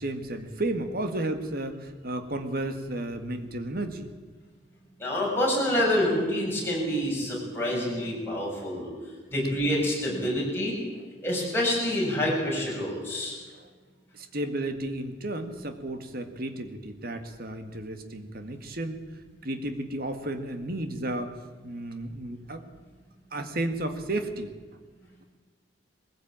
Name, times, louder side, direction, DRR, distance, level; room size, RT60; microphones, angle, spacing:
voice 1, 0.0-4.1 13.5-13.7 14.1-19.0 19.4-21.4 21.6-22.7 23.3-24.5, right 1 dB, 50° right, 7 dB, 1.9 m, -33 dB
voice 2, 5.0-8.9 9.3-10.8 11.2-13.4, left 1 dB, 10° left, -4 dB, 7.3 m, -27 dB
21.0 x 16.0 x 8.9 m, 1.4 s
head